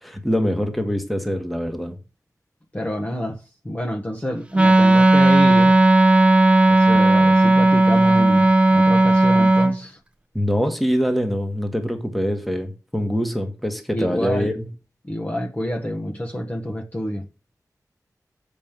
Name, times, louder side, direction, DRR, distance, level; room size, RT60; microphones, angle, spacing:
voice 1, 0.0-2.0 10.3-14.6, equal, ahead, 1.5 m, -24 dB
voice 2, 2.7-3.4 3.6-5.8 6.7-10.0 13.9-14.5 15.1-17.2, equal, 25° left, 1.3 m, -28 dB
Wind instrument woodwind instrument, 4.5-9.8, right 2 dB, 15° right, 0.9 m, -14 dB
7.3 x 5.3 x 7.4 m
wide cardioid pair, 110°, 7 cm